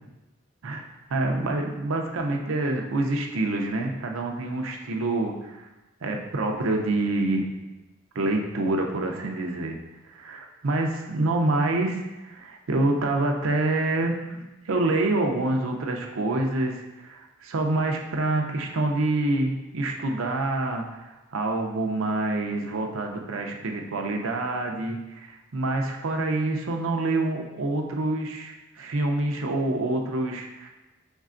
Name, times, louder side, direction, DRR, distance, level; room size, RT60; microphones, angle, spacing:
voice 1, 1.1-5.6 6.0-7.5 8.1-9.8 10.1-14.2 14.6-30.7, right 2 dB, 90° right, 2 dB, 0.6 m, -27 dB
5.3 x 3.3 x 2.5 m, 1.1 s
head